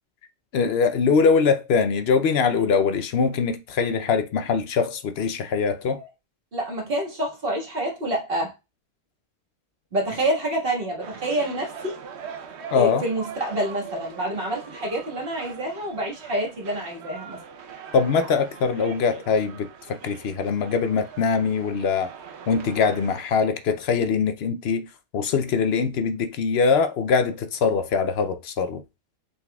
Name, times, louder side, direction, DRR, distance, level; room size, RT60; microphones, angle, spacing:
voice 1, 0.5-6.0 12.7-13.0 17.9-22.1 22.5-24.9 25.1-28.8, left 5 dB, 70° left, 0.8 m, -22 dB
voice 2, 6.5-8.5 9.9-12.0 12.7-17.4, right 1 dB, 55° right, 1.8 m, -27 dB
sound 1, 11.0-23.2, right 6 dB, 75° right, 1.0 m, -42 dB
5.8 x 3.9 x 2.3 m
omnidirectional pair, 1.1 m